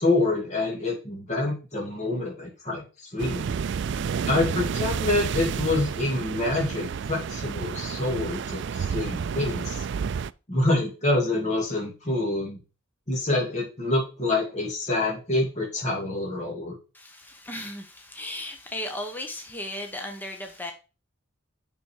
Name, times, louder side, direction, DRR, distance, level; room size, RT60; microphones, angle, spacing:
voice 1, 0.0-3.4 4.3-9.8 10.5-12.6 13.1-16.7, left 2 dB, 35° left, 2.8 m, -26 dB
sound 1, 3.2-10.3, right 6 dB, 55° right, 0.3 m, -30 dB
voice 2, 16.9-20.7, left 1 dB, 10° left, 1.0 m, -36 dB
6.9 x 6.2 x 4.6 m
head